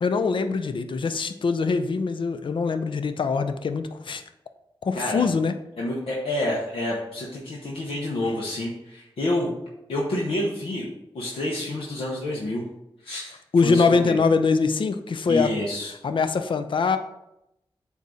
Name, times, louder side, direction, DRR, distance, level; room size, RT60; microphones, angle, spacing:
voice 1, 0.0-4.2 4.8-5.5 13.5-15.5 16.0-17.0, left 4 dB, 65° left, 9 dB, 0.5 m, -23 dB
voice 2, 4.9-5.3 5.8-9.5 9.9-10.9 11.1-12.6 13.0-14.2 15.3-15.9, left 1 dB, 90° left, -4 dB, 1.1 m, -28 dB
8.2 x 2.8 x 4.9 m, 0.86 s
wide cardioid pair, 75°, 9 cm